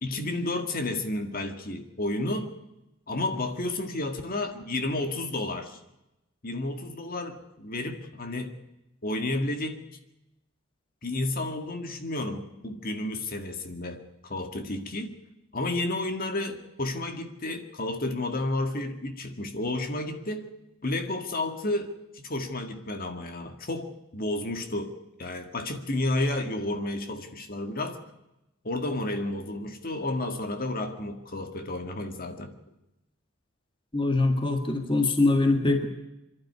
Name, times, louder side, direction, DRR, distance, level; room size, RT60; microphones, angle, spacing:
voice 1, 0.0-2.5 3.1-5.8 6.4-8.5 9.0-9.8 11.0-15.1 15.5-20.4 20.8-24.9 25.2-28.0 28.6-32.5, left 2 dB, 45° left, 6 dB, 2.0 m, -31 dB
voice 2, 33.9-35.9, left 2 dB, 25° left, 5 dB, 1.8 m, -23 dB
27.0 x 12.0 x 9.8 m, 0.93 s
head